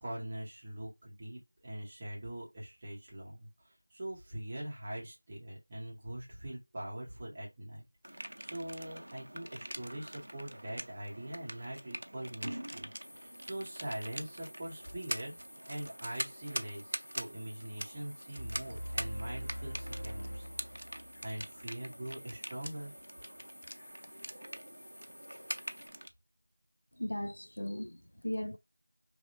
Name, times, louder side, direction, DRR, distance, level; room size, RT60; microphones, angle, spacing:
voice 1, 0.0-15.4 15.7-20.5 21.2-22.9, right 1 dB, 15° right, 0.6 m, -43 dB
sound 1, 8.0-26.1, right 1 dB, 85° right, 0.5 m, -44 dB
sound 2, 13.0-25.9, equal, 40° left, 1.2 m, -54 dB
sound 3, 18.3-21.7, equal, 70° left, 1.5 m, -42 dB
voice 2, 27.0-28.6, left 1 dB, 85° left, 0.3 m, -37 dB
3.1 x 2.7 x 2.6 m
figure-of-eight pair, 180°, 0 cm